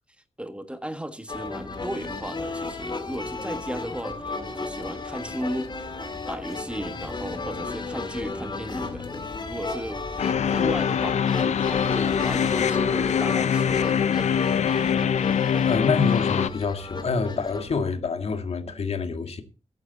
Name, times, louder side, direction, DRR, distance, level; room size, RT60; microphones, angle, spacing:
voice 1, 0.4-5.9 6.3-14.5, right 1 dB, 10° right, 1.6 m, -35 dB
sound 1, 1.3-17.8, left 3 dB, 40° left, 2.6 m, -34 dB
sound 2, 10.2-16.5, left 8 dB, 85° left, 0.6 m, -23 dB
voice 2, 15.7-19.4, left 4 dB, 65° left, 1.9 m, -27 dB
15.0 x 10.5 x 4.1 m
cardioid pair, 85°, 12 cm